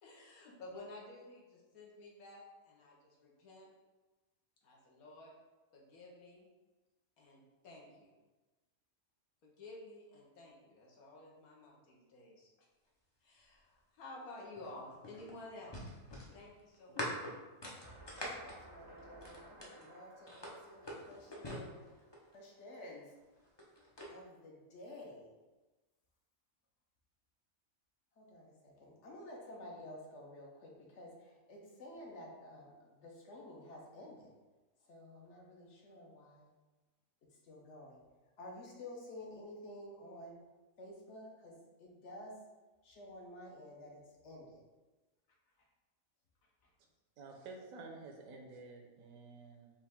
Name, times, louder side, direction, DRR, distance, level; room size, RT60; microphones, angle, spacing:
voice 1, 0.0-3.7 4.6-5.3 5.7-6.5 7.2-8.1 9.4-12.7 13.2-16.0 16.3-17.1, left 2 dB, 85° left, -3 dB, 1.4 m, -53 dB
sound 1, 14.6-19.8 20.3-22.4 23.3-24.1, equal, 35° left, 0.4 m, -44 dB
sound 2, 17.8-22.8, right 1 dB, 25° right, 0.5 m, -58 dB
voice 2, 18.2-21.8 22.3-23.1 24.1-25.3 28.2-34.3 34.8-36.5 37.3-38.0 38.4-40.4 40.8-42.4 42.8-44.6, left 1 dB, 60° left, -1 dB, 1.0 m, -52 dB
voice 3, 47.2-49.7, right 3 dB, 75° right, 2 dB, 1.1 m, -51 dB
5.3 x 2.5 x 3.5 m, 1.2 s
omnidirectional pair, 1.5 m